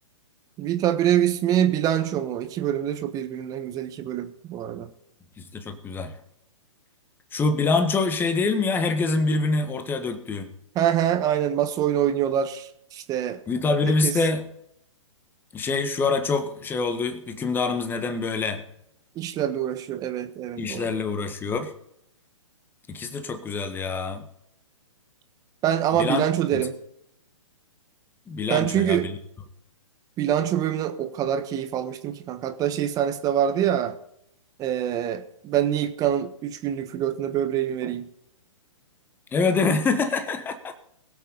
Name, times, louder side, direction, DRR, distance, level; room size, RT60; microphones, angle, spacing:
voice 1, 0.6-4.9 10.7-13.4 13.8-14.1 19.1-20.9 25.6-26.8 28.5-29.1 30.2-34.0 34.6-38.1, right 10 dB, 20° right, 10 dB, 1.2 m, -25 dB
voice 2, 5.4-6.2 7.3-10.5 13.5-14.4 15.5-18.6 20.6-21.7 22.9-24.2 25.9-26.3 26.5-26.6 28.3-29.1 39.3-40.8, left 3 dB, 10° left, 8 dB, 1.4 m, -25 dB
21.5 x 8.3 x 3.9 m, 0.74 s
figure-of-eight pair, 125°, 17 cm